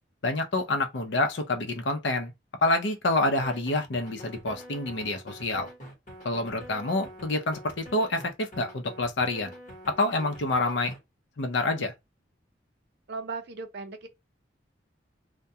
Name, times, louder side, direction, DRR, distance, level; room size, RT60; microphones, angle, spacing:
voice 1, 0.2-2.3 2.6-5.7 6.2-9.5 10.0-10.9 11.4-11.9, left 2 dB, 70° left, 0.6 m, -27 dB
sound 1, 3.4-11.0, equal, 45° left, 1.1 m, -45 dB
voice 2, 13.1-14.1, right 4 dB, 60° right, 0.5 m, -37 dB
2.3 x 2.1 x 2.7 m
head